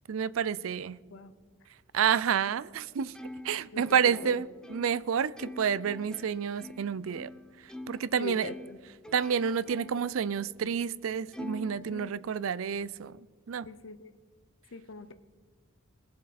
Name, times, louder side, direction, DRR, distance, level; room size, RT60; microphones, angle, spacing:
voice 1, 0.1-1.0 1.9-3.1 3.4-7.3 7.9-8.5 9.1-13.2 13.5-13.7, right 7 dB, 75° right, 0.4 m, -29 dB
Plucked string instrument, 3.1-8.1 8.4-10.1 10.6-10.7 11.3-12.5, left 1 dB, 5° left, 0.6 m, -46 dB
voice 2, 3.7-4.4 8.2-8.8 11.7-12.1 13.7-14.1 14.7-15.1, left 3 dB, 60° left, 0.7 m, -42 dB
22.0 x 7.5 x 4.2 m
head